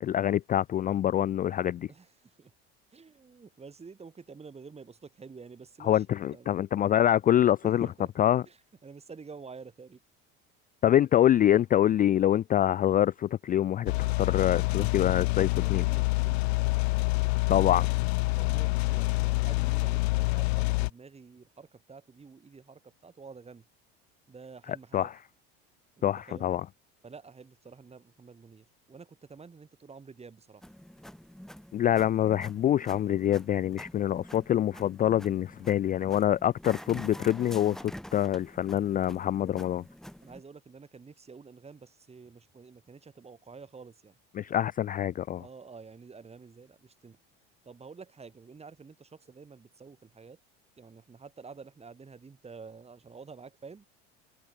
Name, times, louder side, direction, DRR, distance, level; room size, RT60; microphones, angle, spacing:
voice 1, 0.0-1.9 5.9-7.9 8.2-8.4 10.8-15.8 17.5-17.9 24.9-25.1 26.0-26.6 31.7-39.8 44.4-45.4, left 11 dB, 30° left, 0.4 m, -25 dB
voice 2, 1.9-2.5 2.9-6.6 7.6-8.1 8.4-10.0 15.4-16.5 18.3-23.7 24.3-25.1 26.0-26.5 27.0-30.6 40.2-44.2 45.4-47.2 47.6-50.4 50.8-53.9, right 5 dB, 20° right, 2.9 m, -49 dB
sound 1, 13.9-20.9, left 22 dB, 85° left, 0.6 m, -27 dB
sound 2, 30.6-40.4, equal, ahead, 2.3 m, -47 dB
supercardioid pair, 100°, 31 cm